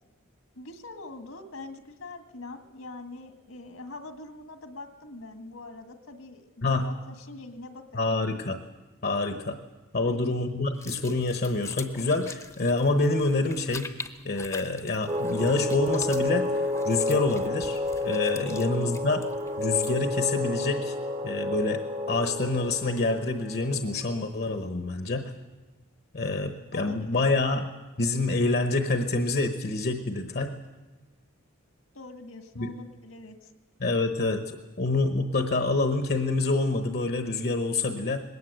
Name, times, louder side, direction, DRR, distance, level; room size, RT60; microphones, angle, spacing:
voice 1, 0.6-8.1 10.0-10.4 18.3-18.5 26.7-27.3 31.9-33.5, left 2 dB, 75° left, 7 dB, 1.9 m, -43 dB
voice 2, 7.9-8.6 9.0-9.6 9.9-13.9 14.2-19.2 19.6-21.0 21.2-21.8 22.1-25.3 26.1-27.7 28.0-30.5 32.6-32.7 33.8-38.2, left 2 dB, 50° left, 7 dB, 1.0 m, -27 dB
sound 1, 10.7-20.1, left 4 dB, 15° left, 0.8 m, -45 dB
sound 2, 15.1-24.1, left 2 dB, 25° right, 0.8 m, -30 dB
20.0 x 18.0 x 7.9 m, 1.2 s
head